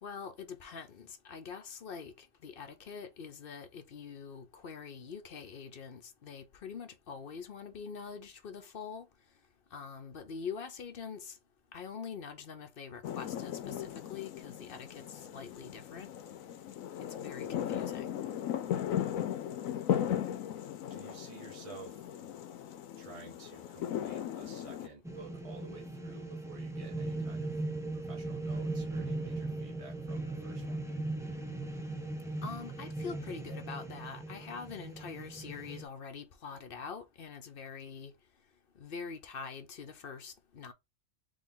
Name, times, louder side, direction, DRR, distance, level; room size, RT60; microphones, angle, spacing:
voice 1, 0.0-9.1 9.7-11.4 11.7-16.1 17.2-18.1 32.4-38.1 38.8-40.7, left 6 dB, 50° left, 0.8 m, -44 dB
sound 1, 13.0-24.9, left 10 dB, 85° left, 1.1 m, -37 dB
voice 2, 20.9-22.0 23.0-27.6 27.9-30.8, right 3 dB, 25° right, 1.6 m, -52 dB
sound 2, 25.1-35.8, right 2 dB, 5° right, 0.5 m, -38 dB
3.8 x 3.4 x 3.8 m
omnidirectional pair, 1.4 m